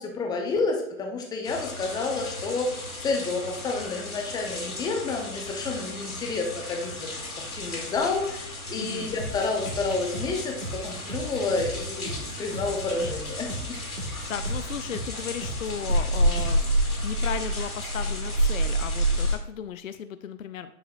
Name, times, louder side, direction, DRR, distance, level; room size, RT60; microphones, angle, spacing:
voice 1, 0.0-2.7 3.0-7.1 7.4-13.8, left 3 dB, 10° left, 2 dB, 0.7 m, -30 dB
sound 1, 1.4-19.3, equal, 85° left, 2.5 m, -30 dB
voice 2, 8.7-9.1 14.3-16.6 17.0-20.7, left 8 dB, 70° left, 11 dB, 0.5 m, -35 dB
sound 2, 9.2-16.9, right 1 dB, 75° right, 1.7 m, -38 dB
10.0 x 5.7 x 2.5 m, 0.76 s
figure-of-eight pair, 110°, 42 cm